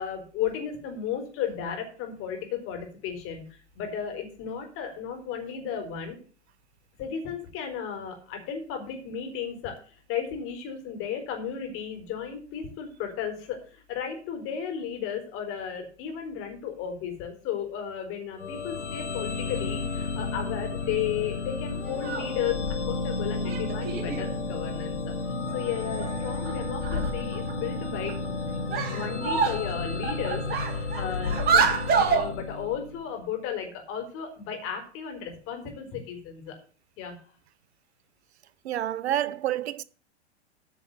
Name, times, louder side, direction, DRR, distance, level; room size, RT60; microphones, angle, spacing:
voice 1, 0.0-6.2 7.0-25.2 25.5-28.1 28.9-36.6 37.0-37.1, left 8 dB, 40° left, 4.3 m, -34 dB
sound 1, 18.4-33.1, left 3 dB, 85° left, 1.7 m, -32 dB
sound 2, 21.9-22.3 23.4-24.3 25.5-25.6 26.0-26.1 26.4-26.5 26.8-27.5 28.1-28.3 28.7-29.7 30.0-32.3, right 5 dB, 25° right, 2.5 m, -26 dB
voice 2, 38.6-39.8, right 12 dB, 65° right, 0.8 m, -28 dB
9.4 x 5.8 x 8.2 m
hypercardioid pair, 110°, 34 cm